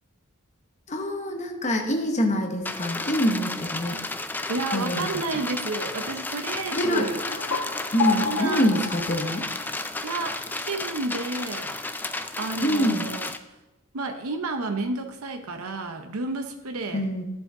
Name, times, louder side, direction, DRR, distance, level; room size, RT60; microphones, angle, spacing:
voice 1, 0.9-4.0 4.7-5.0 6.7-7.1 7.9-9.5 12.6-13.1 16.9-17.2, equal, 35° left, 2 dB, 0.9 m, -25 dB
sound 1, 2.7-13.4, left 2 dB, 10° left, 0.3 m, -33 dB
voice 2, 4.5-7.2 8.2-8.6 10.0-11.8 12.4-13.3 13.9-17.1, right 3 dB, 85° right, 6 dB, 0.7 m, -31 dB
sound 2, 6.9-10.2, left 6 dB, 75° left, 1.1 m, -31 dB
11.0 x 7.4 x 3.7 m, 1.0 s
head